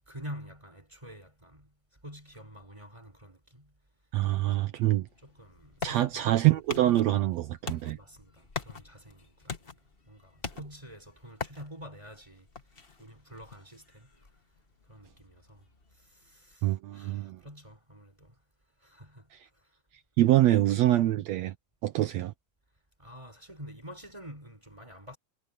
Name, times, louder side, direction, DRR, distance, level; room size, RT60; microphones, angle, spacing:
voice 1, 0.1-1.7 2.0-3.7 4.6-4.7 5.2-6.3 7.9-9.8 10.1-12.5 13.0-14.3 14.9-15.7 15.9-18.4 18.8-19.3 20.5-21.1 23.0-25.2, equal, 10° right, 3.9 m, -48 dB
voice 2, 4.1-5.1 5.8-8.0 16.6-17.4 19.3-19.4 20.2-21.5 21.8-22.3, right 15 dB, 85° right, 1.5 m, -25 dB
sound 1, 5.1-16.5, left 4 dB, 65° left, 0.5 m, -44 dB
omnidirectional pair, 4.0 m